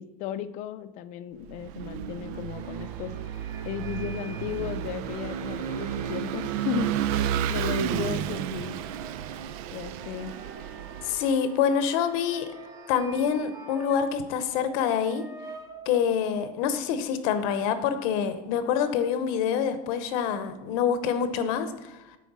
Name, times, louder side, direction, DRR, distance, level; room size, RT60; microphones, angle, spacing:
voice 1, 0.0-3.1 3.7-6.9 7.5-8.8 9.7-10.4, left 10 dB, 40° left, 13 dB, 0.5 m, -35 dB
Vehicle / Engine, 1.5-11.3, right 10 dB, 75° right, 0.5 m, -32 dB
sound 1, 2.6-13.9, right 3 dB, 90° right, 1.7 m, -50 dB
sound 2, 5.4-14.2 14.5-16.0, right 1 dB, 20° right, 0.9 m, -49 dB
voice 2, 11.0-12.5 12.9-15.2 15.9-22.0, left 7 dB, 70° left, 10 dB, 0.8 m, -26 dB
9.2 x 4.5 x 6.1 m, 1.1 s
cardioid pair, 170°, 19 cm